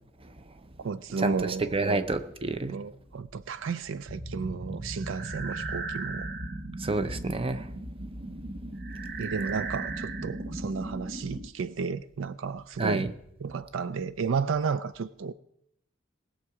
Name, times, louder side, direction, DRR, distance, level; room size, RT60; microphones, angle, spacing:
voice 1, 0.8-2.0 2.7-6.3 9.2-13.1 13.4-15.3, right 5 dB, 75° right, 0.4 m, -33 dB
voice 2, 1.7-2.7 6.8-7.7 12.8-13.1, right 2 dB, 30° right, 0.7 m, -28 dB
sound 1, 4.1-11.5, right 2 dB, 55° right, 1.2 m, -36 dB
19.5 x 7.2 x 4.9 m
head